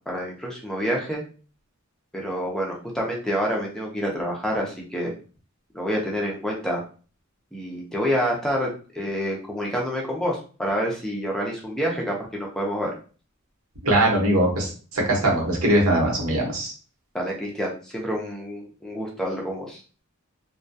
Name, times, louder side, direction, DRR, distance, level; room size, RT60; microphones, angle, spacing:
voice 1, 0.1-1.2 2.1-5.1 5.7-6.8 7.5-12.9 17.1-19.8, equal, 5° left, -2 dB, 0.5 m, -28 dB
voice 2, 13.8-16.7, right 1 dB, 90° right, 0 dB, 1.0 m, -21 dB
2.2 x 2.2 x 2.5 m, 0.38 s
head